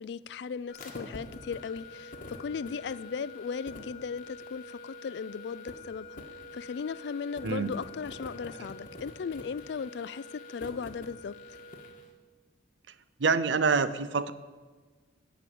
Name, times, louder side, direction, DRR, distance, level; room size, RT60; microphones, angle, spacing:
voice 1, 0.0-6.2 6.5-11.4, left 5 dB, 60° left, 0.3 m, -37 dB
sound 1, 0.7-12.0, left 2 dB, 45° left, 1.4 m, -45 dB
voice 2, 7.4-7.7 13.2-14.3, right 5 dB, 70° right, 0.5 m, -26 dB
14.5 x 5.1 x 8.5 m
head